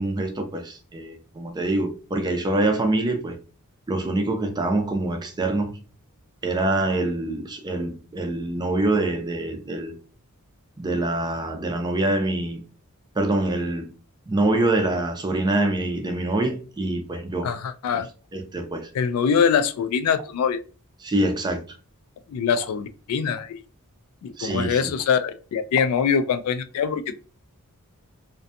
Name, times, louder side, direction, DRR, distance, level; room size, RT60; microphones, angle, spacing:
voice 1, 0.0-3.4 3.9-5.8 6.4-9.9 10.8-12.6 13.2-13.9 14.3-17.5 18.3-18.9 21.0-21.6 24.4-24.9, right 2 dB, 20° right, 0.4 m, -25 dB
voice 2, 17.4-18.1 18.9-20.6 22.3-23.5 24.2-27.0, left 6 dB, 75° left, 0.3 m, -23 dB
2.5 x 2.2 x 2.5 m
head